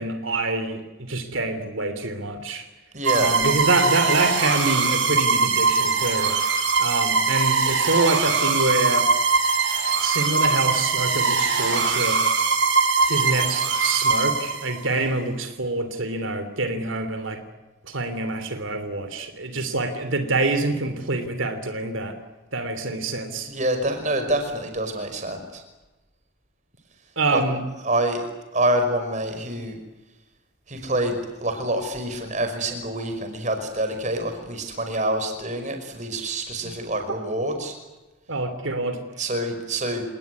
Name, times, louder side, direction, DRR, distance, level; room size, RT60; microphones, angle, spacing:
voice 1, 0.0-2.7 3.1-6.4 6.8-9.1 10.0-12.2 13.1-17.4 17.8-22.2 22.5-23.5 27.2-27.6 36.6-36.7 38.3-39.0, right 2 dB, 85° right, 9 dB, 3.2 m, -26 dB
voice 2, 2.9-3.3 23.5-25.6 27.3-27.4 27.8-28.2 28.5-29.8 30.7-37.7 39.2-40.0, right 1 dB, 40° right, 6 dB, 5.5 m, -26 dB
sound 1, 3.0-14.9, right 4 dB, 65° right, 7.2 m, -22 dB
29.5 x 19.0 x 9.7 m, 1.1 s
head